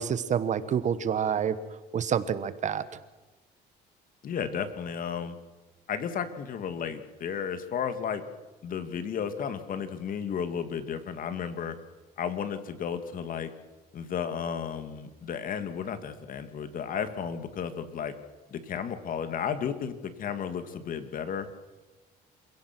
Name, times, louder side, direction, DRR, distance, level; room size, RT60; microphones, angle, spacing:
voice 1, 0.0-1.5 1.9-2.8, right 8 dB, 45° right, 14 dB, 1.3 m, -27 dB
voice 2, 4.2-5.4 5.9-8.2 8.6-11.8 12.2-13.5 13.9-18.1 18.5-21.5, left 7 dB, 55° left, 10 dB, 2.3 m, -33 dB
27.5 x 16.5 x 6.2 m, 1.1 s
cardioid pair, 110°, 17 cm